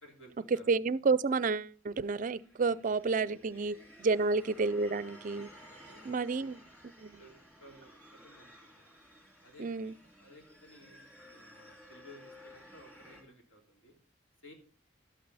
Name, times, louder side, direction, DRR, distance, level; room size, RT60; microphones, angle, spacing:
voice 1, 0.0-0.8 2.6-3.8 4.1-4.4 5.3-5.5 5.7-6.6 7.1-8.9 9.4-13.9 14.4-14.5, equal, 70° left, 3.3 m, -57 dB
voice 2, 0.7-3.7 4.0-5.5 6.1-6.6 7.0-7.2 9.6-9.9, right 4 dB, 40° right, 0.4 m, -30 dB
sound 1, 1.9-13.2, equal, 10° left, 2.6 m, -56 dB
12.5 x 8.6 x 4.1 m
head